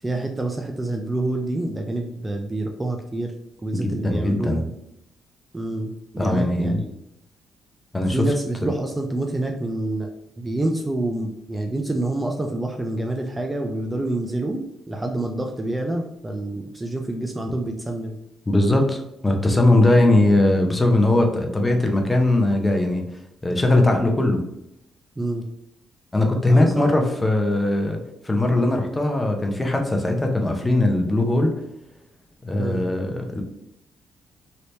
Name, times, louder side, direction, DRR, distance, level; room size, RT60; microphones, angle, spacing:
voice 1, 0.0-3.3 3.6-4.6 5.5-6.9 8.1-10.1 10.4-18.1 25.2-25.4 26.5-27.0 32.6-32.8, right 2 dB, 15° right, 3 dB, 0.4 m, -27 dB
voice 2, 3.7-4.7 6.2-6.8 7.9-8.3 8.6-8.7 18.5-23.0 23.4-24.4 26.1-31.5 32.4-33.4, left 2 dB, 20° left, 3 dB, 0.7 m, -20 dB
3.2 x 2.9 x 2.7 m, 0.81 s
cardioid pair, 90°, 0 cm